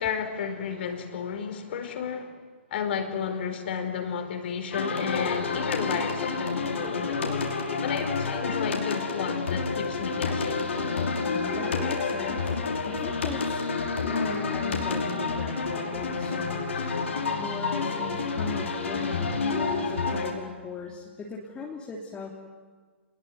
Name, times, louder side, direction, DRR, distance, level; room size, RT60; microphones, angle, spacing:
voice 1, 0.0-2.4 2.7-7.5 7.8-10.7, left 7 dB, 55° left, 7 dB, 4.7 m, -32 dB
sound 1, 4.7-20.3, left 4 dB, 75° left, 5.6 m, -29 dB
voice 2, 11.3-12.6 12.8-16.9 17.4-22.3, left 4 dB, 15° left, -2 dB, 3.2 m, -39 dB
29.0 x 21.5 x 9.5 m, 1.5 s
hypercardioid pair, 125°, 7 cm